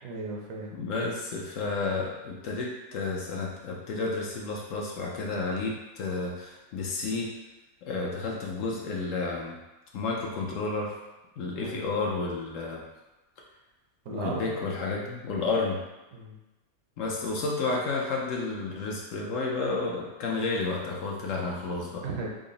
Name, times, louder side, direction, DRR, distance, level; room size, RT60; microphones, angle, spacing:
voice 1, 0.0-0.8 11.6-11.9 14.1-14.6 16.1-16.4 22.0-22.3, right 3 dB, 70° right, -1 dB, 0.9 m, -36 dB
voice 2, 0.7-7.3 7.8-9.6 9.9-10.9 11.4-12.8 14.1-15.8 17.0-22.0, left 3 dB, 70° left, -2 dB, 0.9 m, -31 dB
3.8 x 2.0 x 3.7 m, 1.1 s
omnidirectional pair, 1.6 m